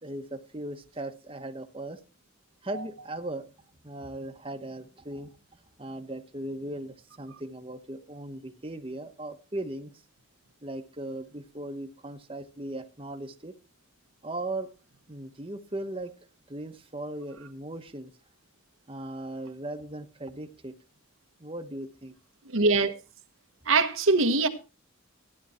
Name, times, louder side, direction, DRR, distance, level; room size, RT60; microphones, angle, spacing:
voice 1, 0.0-2.0 2.6-3.5 3.8-9.9 10.6-13.6 14.2-14.7 15.1-16.1 16.5-18.1 18.9-20.8 21.4-22.1, right 1 dB, 25° right, 1.2 m, -38 dB
voice 2, 22.5-22.9 23.7-24.5, right 3 dB, 80° right, 1.4 m, -22 dB
14.5 x 11.0 x 4.4 m
head